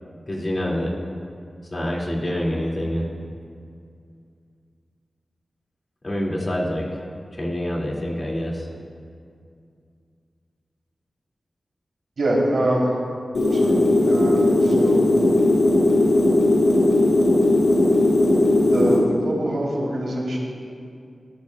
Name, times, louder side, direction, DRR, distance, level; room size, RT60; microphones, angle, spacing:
voice 1, 0.3-0.9 1.7-3.1 6.0-6.8 7.4-8.7, equal, 35° left, -3 dB, 2.3 m, -26 dB
voice 2, 12.2-12.9 13.4-13.8 14.0-15.1 18.7-20.4, right 1 dB, 85° right, -4 dB, 3.3 m, -24 dB
sound 1, 13.3-19.0, left 2 dB, 90° left, 3.5 m, -17 dB
19.5 x 13.0 x 2.3 m, 2.3 s
wide cardioid pair, 85°, 0 cm